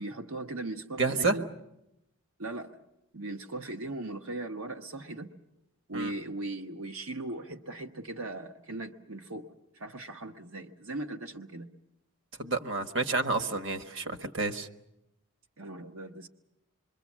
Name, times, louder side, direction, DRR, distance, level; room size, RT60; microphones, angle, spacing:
voice 1, 0.0-1.5 2.4-2.8 3.1-5.3 5.9-11.7 15.6-16.3, right 2 dB, 85° right, 4 dB, 1.1 m, -39 dB
voice 2, 1.0-1.3 5.9-6.1 12.4-14.7, right 3 dB, 60° right, 7 dB, 1.4 m, -29 dB
26.5 x 23.0 x 7.3 m, 0.85 s
head